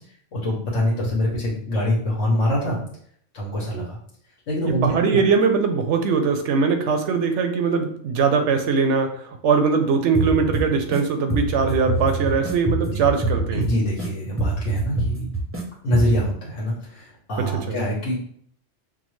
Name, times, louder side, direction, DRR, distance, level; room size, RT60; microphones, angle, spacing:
voice 1, 0.3-2.8 3.3-4.0 4.5-5.2 12.9-13.0 13.5-15.3 15.8-18.2, equal, 70° left, -4 dB, 1.2 m, -24 dB
voice 2, 4.7-13.6 17.4-17.8, right 5 dB, 75° right, 6 dB, 0.8 m, -21 dB
sound 1, 10.1-11.0 11.3-14.1 14.4-15.6 15.9-16.3, right 2 dB, 20° right, 0.4 m, -25 dB
5.8 x 2.1 x 3.1 m, 0.63 s
omnidirectional pair, 1.3 m